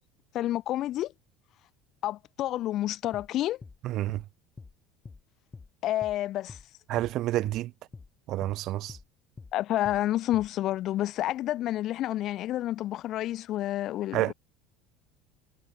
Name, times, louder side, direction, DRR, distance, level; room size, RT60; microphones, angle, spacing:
voice 1, 0.3-1.1 2.0-3.6 5.8-6.6 9.5-14.3, left 14 dB, 55° left, 0.5 m, -29 dB
sound 1, 3.1-3.3 3.6-3.8 4.1-4.3 4.6-4.7 5.0-5.2 5.5-5.7 6.0-6.2 6.5-6.7 7.0-7.1 7.5-7.6 7.9-8.1 8.4-8.6 8.9-9.1 9.4-9.5 9.9-10.0 10.3-10.5, left 4 dB, 20° left, 4.8 m, -46 dB
voice 2, 3.8-4.2 6.9-7.7 8.3-9.0 14.1-14.3, right 15 dB, 55° right, 1.2 m, -29 dB
supercardioid pair, 105°, 0 cm